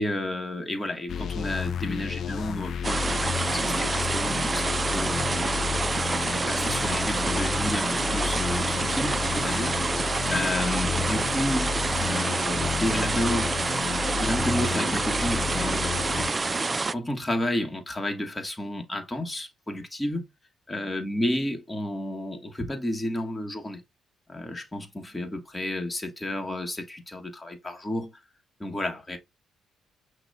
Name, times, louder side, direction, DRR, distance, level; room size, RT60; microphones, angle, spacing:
voice 1, 0.0-5.5 6.4-9.8 10.3-13.5 14.2-16.3 16.9-20.2 20.7-23.8 24.3-28.2 28.6-29.2, left 1 dB, 15° left, 1.3 m, -31 dB
sound 1, 1.1-16.6, left 7 dB, 60° left, 0.3 m, -32 dB
sound 2, 2.8-16.9, right 3 dB, 25° right, 0.3 m, -27 dB
5.9 x 2.2 x 3.8 m
cardioid pair, 90°, 0 cm